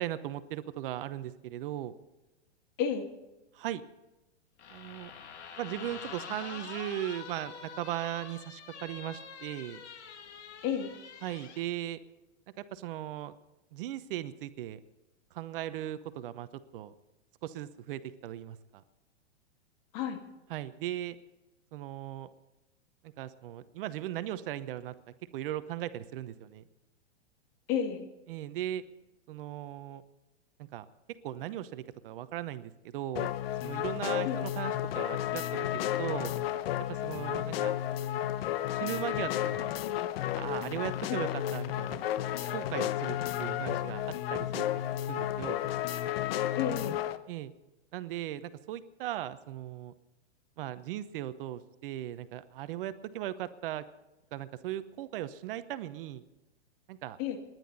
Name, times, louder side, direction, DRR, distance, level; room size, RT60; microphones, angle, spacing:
voice 1, 0.0-1.9 3.5-3.8 4.7-5.1 5.6-9.8 11.2-12.0 12.6-13.3 13.7-14.8 15.3-16.5 16.7-16.9 17.4-18.8 20.5-21.2 21.7-22.3 23.2-24.9 25.3-26.6 28.3-28.8 29.3-30.0 30.6-30.8 31.2-33.3 33.6-35.7 36.0-36.3 36.9-37.7 38.7-39.7 40.3-42.0 42.5-44.6 45.1-45.6 47.3-47.5 47.9-49.9 50.6-53.8 54.3-56.2 56.9-57.2, right 12 dB, 50° right, 13 dB, 0.9 m, -38 dB
sound 1, 4.6-11.7, left 6 dB, 80° left, 2.6 m, -46 dB
voice 2, 27.7-28.1 34.2-34.4 41.1-41.2 46.6-47.0 57.2-57.4, left 8 dB, 40° left, 5 dB, 2.5 m, -31 dB
sound 2, 33.2-47.2, left 12 dB, 60° left, 1.0 m, -32 dB
29.0 x 10.5 x 4.1 m, 1.0 s
hypercardioid pair, 135°, 34 cm